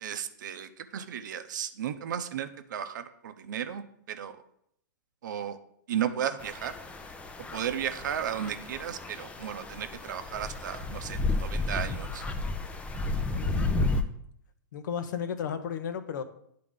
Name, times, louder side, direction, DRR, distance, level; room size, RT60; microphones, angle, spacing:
voice 1, 0.0-4.3 5.2-5.6 5.9-6.7 7.5-12.2, right 9 dB, 70° right, 0.6 m, -34 dB
sound 1, 6.4-14.0, left 2 dB, 10° left, 0.5 m, -32 dB
voice 2, 13.3-14.1 14.7-16.2, left 7 dB, 70° left, 0.7 m, -34 dB
9.5 x 3.8 x 3.7 m
hypercardioid pair, 120°, 11 cm